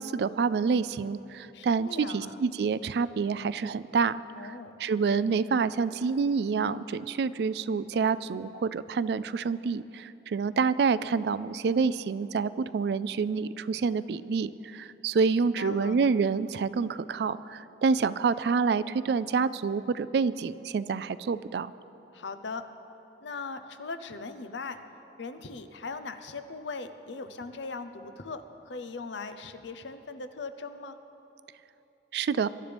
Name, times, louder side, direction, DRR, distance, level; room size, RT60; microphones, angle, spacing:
voice 1, 0.0-4.5 4.8-21.7 32.1-32.5, right 5 dB, 65° right, 16 dB, 0.3 m, -27 dB
voice 2, 1.5-2.4 4.4-4.8 15.4-16.0 22.1-22.7 23.2-24.8 25.2-31.0, left 4 dB, 85° left, 9 dB, 0.7 m, -39 dB
22.5 x 11.5 x 3.4 m, 3.0 s
head